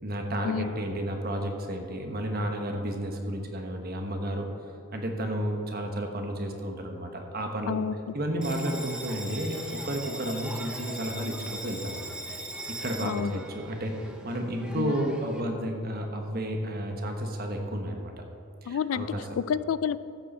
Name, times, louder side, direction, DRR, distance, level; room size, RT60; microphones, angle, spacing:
voice 1, 0.0-4.5 4.9-7.8 8.1-12.1 12.7-18.1 18.6-19.4, right 1 dB, 45° right, 3 dB, 1.2 m, -32 dB
voice 2, 7.7-8.1 13.0-13.4 14.8-14.9 18.7-20.0, left 7 dB, 70° left, 16 dB, 0.3 m, -30 dB
Bell, 8.4-15.4, right 1 dB, 5° right, 0.8 m, -40 dB
13.5 x 8.5 x 4.3 m, 2.7 s
head